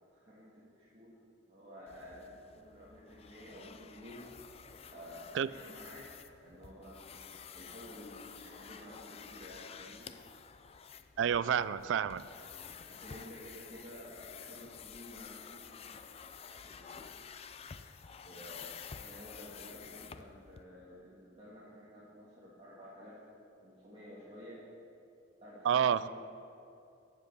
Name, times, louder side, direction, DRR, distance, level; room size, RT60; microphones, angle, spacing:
voice 1, 0.1-1.1 1.5-4.2 4.6-6.1 6.4-10.1 12.9-16.0 16.4-17.2 18.2-18.7 19.0-23.2 23.6-24.6 25.4-26.1, equal, 30° right, -9 dB, 1.8 m, -52 dB
sound 1, 1.9-20.6, left 7 dB, 30° left, 0.3 m, -51 dB
voice 2, 11.2-12.2 25.7-26.1, right 8 dB, 65° right, 17 dB, 0.3 m, -29 dB
12.0 x 5.3 x 8.1 m, 2.6 s
head